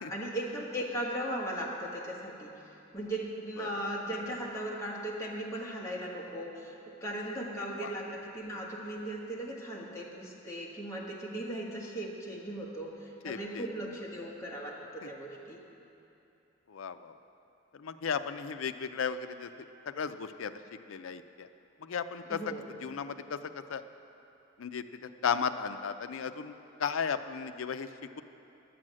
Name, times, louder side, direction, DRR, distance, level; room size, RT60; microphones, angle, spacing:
voice 1, 0.1-2.5 2.9-15.6 22.3-22.6, right 1 dB, 15° left, -4 dB, 1.5 m, -37 dB
voice 2, 13.2-13.7 15.0-15.1 16.7-17.1 17.7-19.5 19.9-20.5 20.9-21.5 21.8-22.5 22.8-23.8 24.6-26.5 26.8-28.2, left 6 dB, 85° left, 10 dB, 0.5 m, -35 dB
11.0 x 7.6 x 7.5 m, 2.9 s
head